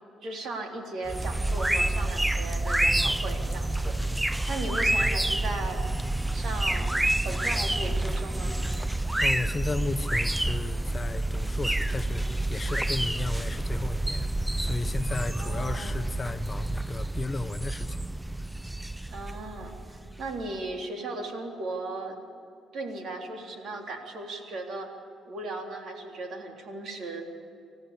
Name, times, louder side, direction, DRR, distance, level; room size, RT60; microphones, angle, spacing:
voice 1, 0.2-5.8 6.3-8.5 15.4-16.0 19.1-22.2 22.7-24.9 25.3-27.2, right 2 dB, 65° right, 2 dB, 3.5 m, -37 dB
sound 1, 1.1-20.5, right 1 dB, 10° right, 0.5 m, -28 dB
voice 2, 9.2-14.3 14.6-18.0, left 3 dB, 30° left, 9 dB, 1.0 m, -34 dB
28.5 x 14.5 x 8.4 m, 2.4 s
cardioid pair, 90°, 0 cm